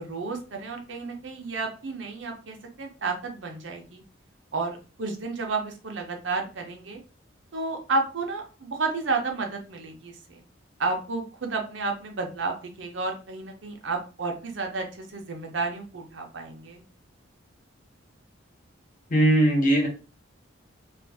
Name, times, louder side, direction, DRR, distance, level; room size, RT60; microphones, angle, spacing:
voice 1, 0.0-4.0 4.5-7.0 7.5-10.4 10.8-16.8, right 3 dB, 70° right, 3 dB, 0.7 m, -31 dB
voice 2, 19.1-19.9, right 1 dB, 40° left, 0 dB, 0.9 m, -19 dB
2.5 x 2.5 x 3.4 m, 0.34 s
head